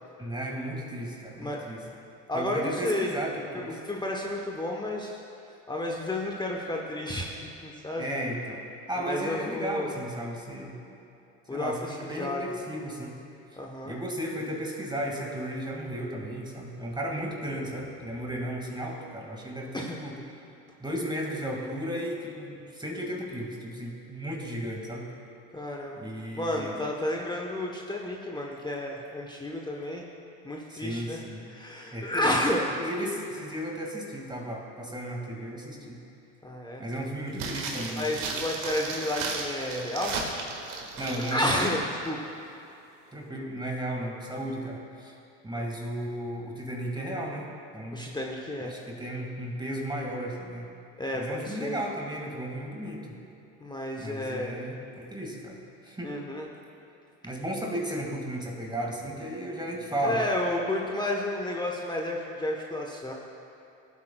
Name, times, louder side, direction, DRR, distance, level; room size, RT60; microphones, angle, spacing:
voice 1, 0.2-1.8 2.3-3.8 8.0-8.6 8.9-10.8 11.5-13.1 13.8-20.1 20.8-25.1 26.0-26.8 30.7-31.5 31.9-32.3 32.8-36.0 36.8-38.1 41.0-41.7 43.1-45.2 45.4-47.5 47.7-48.0 48.6-50.7 51.1-53.0 54.0-56.1 57.2-60.2, equal, 10° right, -1 dB, 1.9 m, -34 dB
voice 2, 2.3-3.1 3.7-5.2 5.7-8.1 9.1-10.0 11.5-12.4 13.6-14.0 19.7-20.0 25.5-26.0 26.4-30.0 30.4-31.2 31.5-32.7 36.4-36.8 37.9-40.2 40.6-41.0 41.3-42.2 45.6-45.7 47.9-48.8 51.0-51.8 53.6-54.6 56.0-56.5 60.0-63.1, left 1 dB, 10° left, -1 dB, 0.9 m, -31 dB
sound 1, 37.3-41.8 42.1-42.2, right 4 dB, 55° right, 1.7 m, -35 dB
16.5 x 8.3 x 2.3 m, 2.9 s
hypercardioid pair, 85°, 37 cm